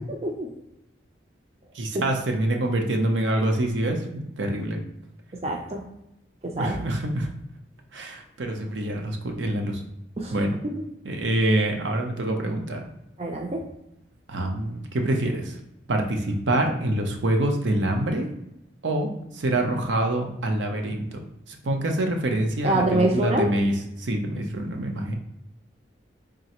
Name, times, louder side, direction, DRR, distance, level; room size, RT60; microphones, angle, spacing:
voice 1, 1.7-4.8 6.6-7.3 7.9-9.8 10.3-10.6 11.0-12.8 14.3-15.6 15.9-18.3 18.8-25.1, right 1 dB, 80° right, 3 dB, 0.7 m, -26 dB
voice 2, 5.4-5.8 6.4-6.8 10.2-10.3 10.7-10.8 13.2-13.6 22.6-23.5, right 1 dB, 35° right, 1 dB, 0.4 m, -25 dB
3.8 x 3.1 x 2.9 m, 0.83 s
head